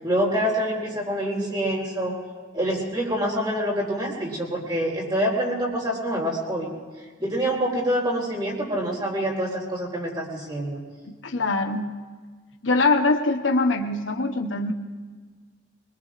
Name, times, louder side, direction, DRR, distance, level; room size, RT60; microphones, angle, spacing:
voice 1, 0.0-2.1 2.5-6.7 7.2-10.8, equal, 25° right, -2 dB, 4.0 m, -26 dB
voice 2, 11.1-11.9 12.6-14.7, left 3 dB, 85° left, 4 dB, 0.9 m, -23 dB
24.5 x 21.0 x 2.5 m, 1.5 s
head